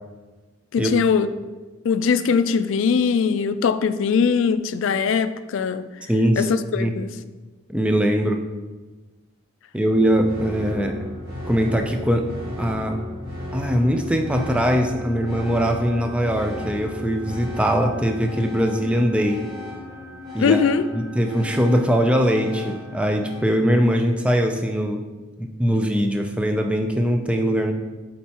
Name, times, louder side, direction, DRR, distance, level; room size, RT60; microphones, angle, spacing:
voice 1, 0.7-1.3 1.8-5.9 6.4-7.1 20.4-20.9, left 6 dB, 70° left, 12 dB, 0.3 m, -21 dB
voice 2, 6.1-6.5 6.8-6.9 7.7-8.4 9.7-11.0 11.5-12.3 12.6-13.0 13.5-19.4 20.3-20.6 20.9-25.0 25.4-27.7, equal, 5° right, 4 dB, 0.4 m, -21 dB
sound 1, 9.8-23.4, left 1 dB, 50° right, 1.9 m, -35 dB
8.5 x 4.5 x 2.9 m, 1.3 s
head